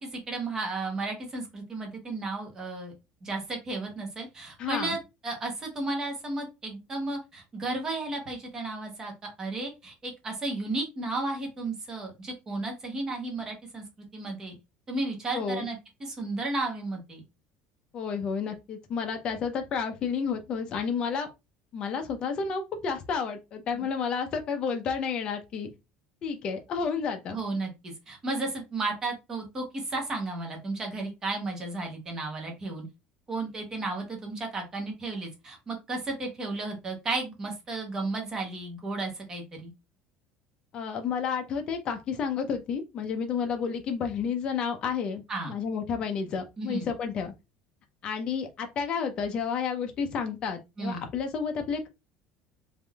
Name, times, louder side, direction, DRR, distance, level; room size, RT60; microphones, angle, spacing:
voice 1, 0.0-2.9 3.2-5.0 5.2-13.8 14.1-14.6 14.9-17.2 23.7-23.8 27.3-32.9 33.3-39.7 45.3-45.5 46.6-46.9 50.8-51.1, right 2 dB, 20° right, 0.8 m, -33 dB
voice 2, 4.6-5.0 15.3-15.7 17.9-21.3 21.7-25.7 26.2-27.4 40.7-45.2 45.5-47.3 48.0-51.9, left 6 dB, 30° left, 0.5 m, -31 dB
3.3 x 2.5 x 2.2 m
cardioid pair, 170°, 3 cm